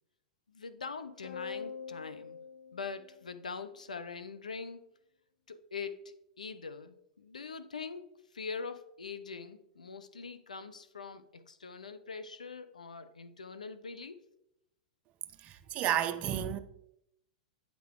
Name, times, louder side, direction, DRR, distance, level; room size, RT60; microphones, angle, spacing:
voice 1, 0.5-2.4 2.7-4.8 5.5-14.3, left 5 dB, 85° left, 0.5 m, -43 dB
sound 1, 1.2-3.8, left 6 dB, 60° left, 1.0 m, -44 dB
voice 2, 15.4-16.6, right 10 dB, 35° right, 0.5 m, -31 dB
8.6 x 3.7 x 3.6 m
figure-of-eight pair, 100°, 4 cm